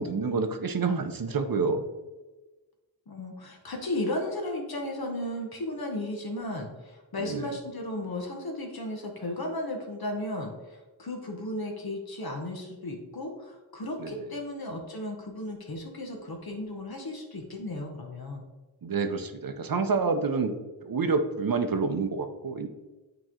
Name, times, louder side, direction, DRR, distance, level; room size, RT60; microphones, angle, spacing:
voice 1, 0.0-1.9 7.2-7.6 14.0-14.1 18.8-20.6 20.8-22.7, right 4 dB, 55° right, 8 dB, 0.7 m, -28 dB
voice 2, 3.1-18.5, left 1 dB, 60° left, 1 dB, 1.0 m, -35 dB
8.8 x 3.1 x 3.7 m, 1.2 s
wide cardioid pair, 75°, 42 cm